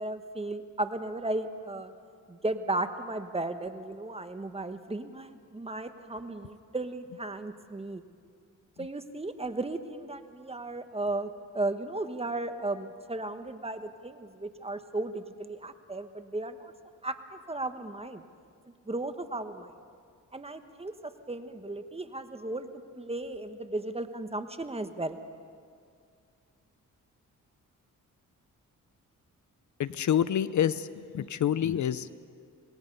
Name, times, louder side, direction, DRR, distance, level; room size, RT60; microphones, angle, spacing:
voice 1, 0.0-1.9 2.3-8.0 8.8-16.7 17.0-18.2 18.8-19.7 20.3-22.7 22.9-25.2, right 2 dB, 20° right, 8 dB, 1.3 m, -35 dB
voice 2, 29.8-30.9 31.1-32.1, left 9 dB, 65° left, 15 dB, 0.7 m, -27 dB
27.0 x 20.0 x 5.5 m, 2.2 s
cardioid pair, 85°, 32 cm